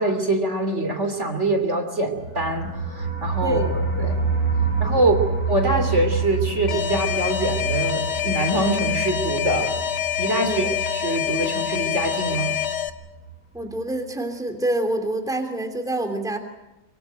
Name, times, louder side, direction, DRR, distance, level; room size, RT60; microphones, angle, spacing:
voice 1, 0.0-4.2 4.8-5.2 5.5-9.9 10.2-12.5, right 1 dB, 40° right, 6 dB, 3.3 m, -24 dB
sound 1, 2.2-12.9 13.2-13.3 13.6-13.7, right 4 dB, 55° right, 6.9 m, -28 dB
voice 2, 3.4-3.8 5.0-5.1 10.4-10.7 13.5-16.4, right 1 dB, ahead, 5 dB, 2.9 m, -27 dB
Alarm, 6.7-12.9, left 10 dB, 75° left, 1.9 m, -26 dB
24.5 x 23.5 x 7.9 m, 0.97 s
omnidirectional pair, 1.9 m